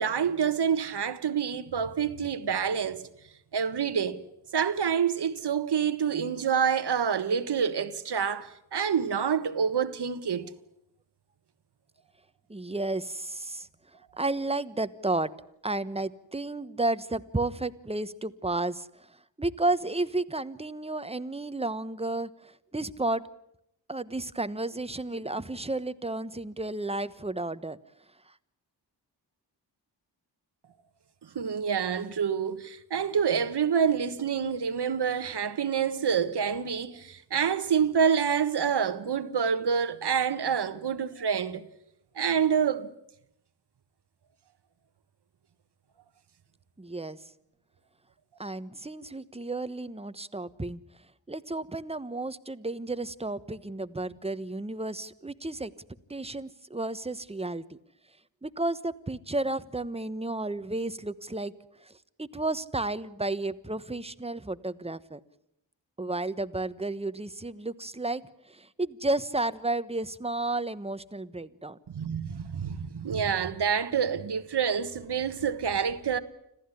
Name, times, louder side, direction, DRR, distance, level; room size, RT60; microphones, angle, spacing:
voice 1, 0.0-3.1 3.5-4.2 4.5-10.5 31.3-41.7 42.1-42.9 71.9-76.2, right 7 dB, 65° right, 1.5 m, -27 dB
voice 2, 12.5-13.7 14.2-15.3 15.6-23.2 23.9-27.8 46.8-47.2 48.4-50.8 51.3-55.7 56.1-57.8 58.4-61.5 61.8-65.2 66.0-71.8, right 2 dB, 15° right, 1.1 m, -32 dB
26.5 x 15.0 x 9.8 m
cardioid pair, 55°, 43 cm